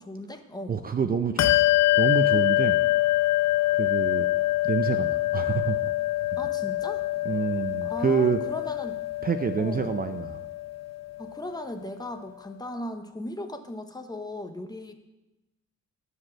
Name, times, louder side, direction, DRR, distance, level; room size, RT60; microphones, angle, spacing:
voice 1, 0.0-0.9 6.4-7.0 7.8-9.0 9.6-9.8 11.2-14.9, left 1 dB, 15° left, 7 dB, 0.8 m, -37 dB
voice 2, 0.7-1.6 2.0-2.8 3.7-4.3 4.6-5.9 7.3-8.4 9.2-10.4, right 6 dB, 30° right, 8 dB, 0.5 m, -27 dB
Bell, 1.4-11.4, left 17 dB, 60° left, 0.5 m, -25 dB
9.4 x 5.0 x 6.3 m, 1.0 s
cardioid pair, 90°, 30 cm